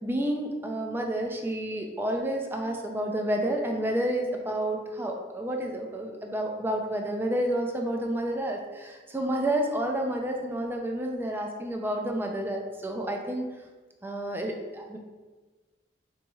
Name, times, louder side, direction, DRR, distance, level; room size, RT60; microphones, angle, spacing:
voice 1, 0.0-13.5 14.0-15.0, right 1 dB, 10° right, 2 dB, 0.3 m, -30 dB
3.9 x 3.1 x 2.3 m, 1.3 s
head